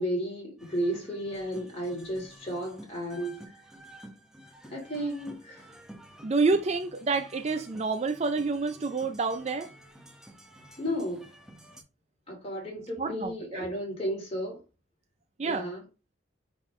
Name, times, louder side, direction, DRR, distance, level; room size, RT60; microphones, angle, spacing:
voice 1, 0.0-3.4 4.7-5.6 10.8-11.3 12.3-14.6 15.4-15.8, equal, 30° left, 2.8 m, -33 dB
sound 1, 0.6-11.8, right 1 dB, 5° right, 1.1 m, -51 dB
voice 2, 6.2-9.7 13.0-13.7 15.4-15.7, right 4 dB, 30° right, 0.4 m, -28 dB
8.8 x 3.7 x 3.1 m
head